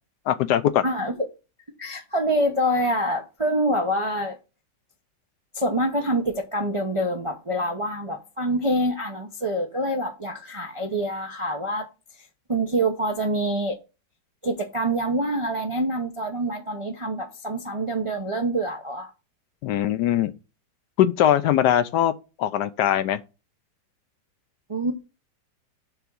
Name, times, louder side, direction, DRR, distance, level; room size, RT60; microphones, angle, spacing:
voice 1, 0.3-0.8 19.6-20.3 21.0-22.1 22.4-23.2, left 11 dB, 75° left, 1.1 m, -21 dB
voice 2, 0.8-1.2 1.8-4.4 5.5-11.9 12.5-13.8 14.4-19.1 24.7-24.9, right 1 dB, 35° right, 0.5 m, -26 dB
6.8 x 3.5 x 6.2 m
omnidirectional pair, 1.9 m